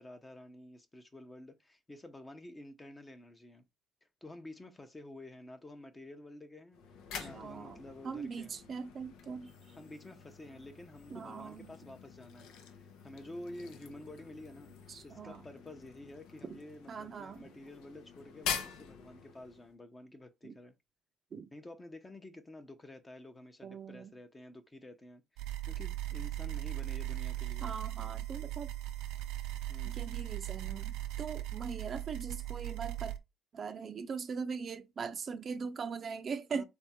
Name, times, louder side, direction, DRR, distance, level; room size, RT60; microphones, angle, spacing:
voice 1, 0.0-3.7 4.2-6.8 7.2-8.6 9.8-12.5 12.8-14.7 15.0-20.8 21.5-27.7 29.7-30.0 36.5-36.6, left 1 dB, 20° left, 0.8 m, -50 dB
sound 1, 6.7-19.7, left 7 dB, 80° left, 0.8 m, -46 dB
voice 2, 7.1-9.8 11.1-11.7 14.9-15.4 16.5-16.6 16.9-17.5 20.4-20.6 21.3-21.5 23.6-24.1 27.6-28.7 29.8-33.2 33.5-36.6, right 5 dB, 40° right, 0.6 m, -41 dB
sound 2, 25.4-33.2, right 14 dB, 90° right, 0.6 m, -38 dB
3.5 x 3.5 x 4.3 m
cardioid pair, 115°, 0 cm